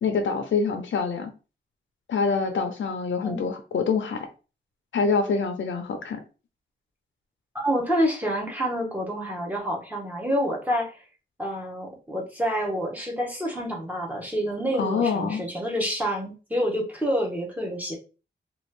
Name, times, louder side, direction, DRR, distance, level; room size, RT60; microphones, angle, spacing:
voice 1, 0.0-1.3 2.1-4.3 4.9-6.2 14.8-15.4, left 5 dB, 75° left, 0.6 m, -25 dB
voice 2, 7.5-11.0 11.4-17.9, equal, 10° right, 0.8 m, -28 dB
3.0 x 2.4 x 3.2 m
wide cardioid pair, 170°, 20 cm